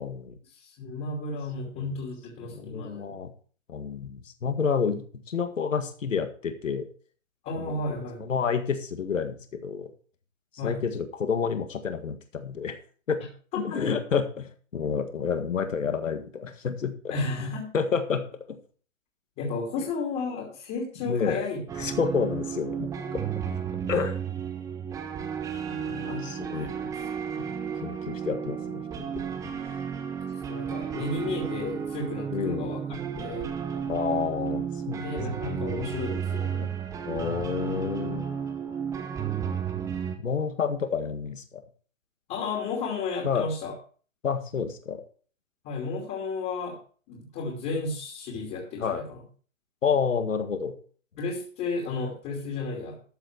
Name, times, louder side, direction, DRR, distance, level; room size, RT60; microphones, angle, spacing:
voice 1, 0.0-0.4 2.4-3.3 3.7-6.9 7.6-7.8 8.2-9.9 10.6-12.8 13.1-13.2 13.5-17.1 17.7-18.6 21.0-21.4 21.8-23.2 23.9-24.2 25.7-26.8 27.8-29.2 32.3-32.7 33.9-35.2 36.6-36.7 37.0-38.2 40.2-41.4 43.2-43.5 44.2-45.0 48.8-49.0 49.8-50.8, left 6 dB, 75° left, 7 dB, 1.9 m, -29 dB
voice 2, 0.5-3.2 7.4-8.3 10.6-10.8 13.5-14.0 17.1-17.7 19.4-21.6 25.8-27.0 27.3-27.6 30.5-33.5 35.0-36.7 42.3-43.7 45.6-46.8 47.1-49.2 51.2-53.0, left 3 dB, 25° left, -1 dB, 2.8 m, -33 dB
sound 1, 21.7-40.2, right 7 dB, 10° right, 0.8 m, -33 dB
13.5 x 6.8 x 4.8 m, 0.42 s
hypercardioid pair, 135°, 39 cm